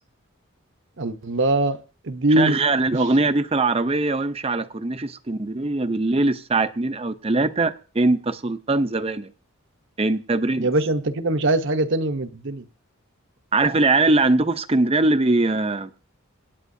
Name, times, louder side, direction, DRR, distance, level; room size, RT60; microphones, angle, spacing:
voice 1, 1.0-2.6 2.9-3.0 10.6-12.6, right 2 dB, 60° right, 0.9 m, -22 dB
voice 2, 2.4-9.3 10.0-10.7 13.5-15.9, right 2 dB, 25° right, 0.6 m, -21 dB
26.0 x 8.8 x 2.7 m
head